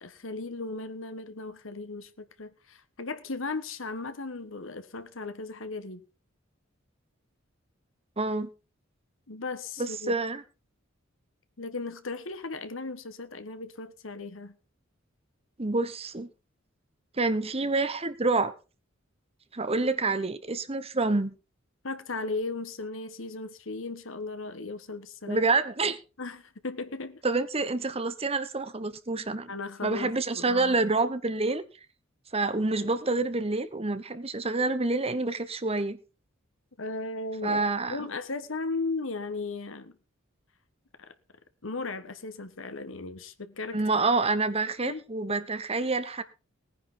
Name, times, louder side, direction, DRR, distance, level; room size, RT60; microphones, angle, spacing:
voice 1, 0.0-6.0 9.3-10.2 11.6-14.6 21.8-25.5 26.2-27.2 29.5-30.8 36.8-37.6 37.9-40.0 41.0-41.1 41.6-44.0 44.8-45.0, left 3 dB, 70° left, 1.4 m, -36 dB
voice 2, 8.2-8.5 9.8-10.4 15.6-16.3 17.2-18.5 19.5-21.3 25.3-26.0 27.2-29.5 29.8-31.6 32.3-36.0 37.4-38.0 43.7-46.2, right 3 dB, 30° right, 1.1 m, -27 dB
18.5 x 10.0 x 3.9 m
head